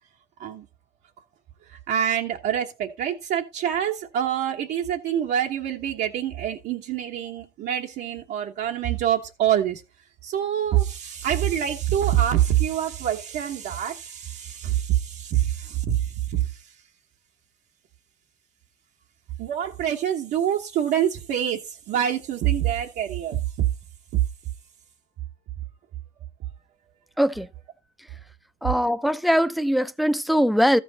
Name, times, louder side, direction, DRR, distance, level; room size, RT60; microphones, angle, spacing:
voice 1, 1.7-9.8 10.2-16.6 19.4-23.7 24.1-24.2, right 10 dB, 75° right, 1.1 m, -25 dB
voice 2, 27.2-27.5 28.6-30.8, equal, ahead, 0.5 m, -21 dB
13.5 x 6.0 x 4.0 m
cardioid pair, 110°, 17 cm